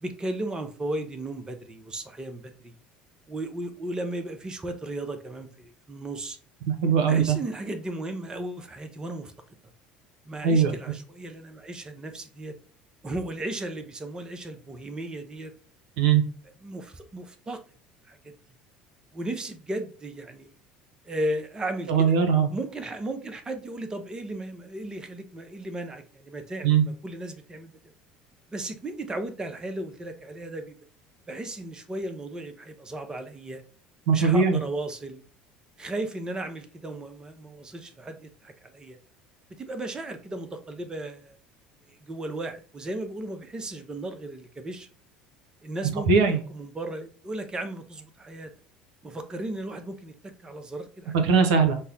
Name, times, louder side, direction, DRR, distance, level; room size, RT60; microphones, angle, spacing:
voice 1, 0.0-2.7 3.3-6.4 7.1-9.3 10.3-12.6 13.0-15.5 16.6-17.6 18.0-18.3 19.1-20.6 21.0-22.2 22.5-27.7 28.5-30.7 31.3-33.6 34.1-35.2 35.8-39.0 39.6-41.4 41.9-44.9 45.6-48.5 49.0-51.2, right 1 dB, 20° right, 7 dB, 0.6 m, -35 dB
voice 2, 6.7-7.4 10.4-10.7 16.0-16.2 21.9-22.5 26.6-26.8 34.1-34.6 46.1-46.4 51.2-51.8, right 6 dB, 70° right, 6 dB, 0.6 m, -20 dB
5.4 x 2.1 x 2.4 m, 0.42 s
hypercardioid pair, 65°, 4 cm